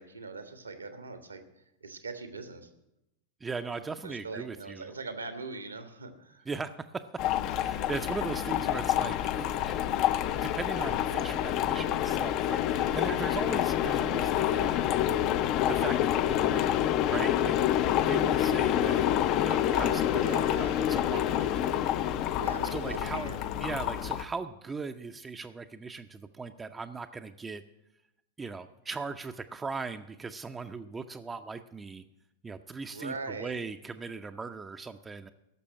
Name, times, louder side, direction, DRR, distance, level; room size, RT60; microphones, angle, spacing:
voice 1, 0.0-1.4 1.8-2.7 4.0-6.5 19.7-20.8 22.3-23.4 32.9-33.6, right 3 dB, 80° right, 8 dB, 1.4 m, -41 dB
voice 2, 3.4-4.9 6.5-7.2 7.5-9.8 10.2-15.0 15.6-16.7 17.1-17.6 18.0-21.8 22.7-27.6 28.4-32.0 32.4-35.3, right 4 dB, 15° right, 7 dB, 0.5 m, -39 dB
sound 1, 7.2-24.2, left 11 dB, 40° left, 0.5 m, -27 dB
12.0 x 6.8 x 9.6 m, 0.88 s
figure-of-eight pair, 90°, 0 cm